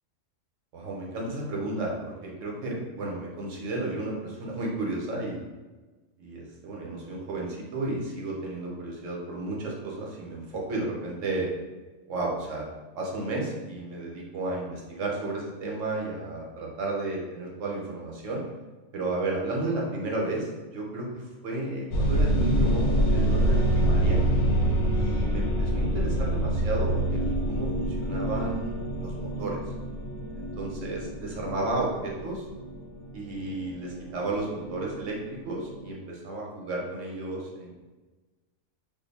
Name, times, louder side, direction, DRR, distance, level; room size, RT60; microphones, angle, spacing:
voice 1, 0.7-5.4 6.2-11.5 12.1-12.7 13.0-18.4 18.9-24.2 24.9-29.6 30.3-32.4 33.1-37.7, right 2 dB, 65° right, -2 dB, 1.0 m, -33 dB
sound 1, 21.9-35.9, right 1 dB, 70° left, 0.9 m, -27 dB
2.6 x 2.4 x 4.0 m, 1.2 s
omnidirectional pair, 1.5 m